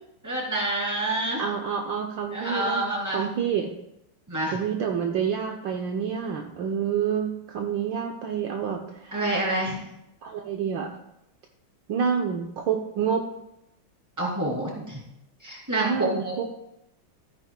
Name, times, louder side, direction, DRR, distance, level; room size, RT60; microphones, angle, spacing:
voice 1, 0.2-1.4 2.3-3.2 4.3-4.6 9.1-9.8 14.2-15.0 15.4-16.3, right 1 dB, 10° right, -3 dB, 2.6 m, -27 dB
voice 2, 1.4-3.7 4.5-9.2 10.2-10.9 11.9-13.2 15.8-16.5, right 7 dB, 70° right, 2 dB, 1.4 m, -28 dB
13.5 x 9.7 x 2.2 m, 0.82 s
omnidirectional pair, 2.3 m